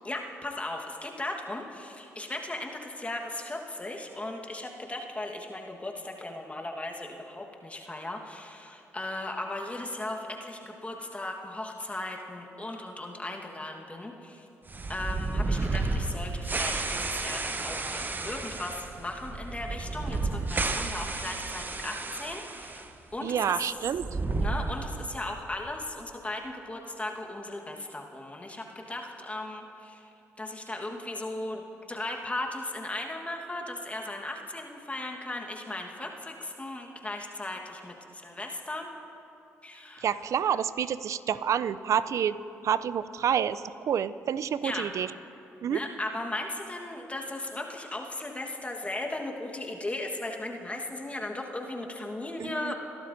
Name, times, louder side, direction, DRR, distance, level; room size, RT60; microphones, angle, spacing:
voice 1, 0.0-14.5 14.9-22.8 23.1-23.6 24.4-30.1 30.4-38.9 39.6-40.0 44.6-44.9 45.7-52.7, left 2 dB, 20° left, 1 dB, 1.4 m, -37 dB
sound 1, 14.7-22.9 23.1-23.2 23.9-25.2, right 3 dB, 30° right, 0.9 m, -32 dB
voice 2, 23.2-24.1 40.0-42.4 42.6-45.1 45.6-45.8 52.4-52.7, right 8 dB, 60° right, 15 dB, 0.4 m, -28 dB
22.5 x 11.5 x 2.7 m, 2.9 s
hypercardioid pair, 50°, 6 cm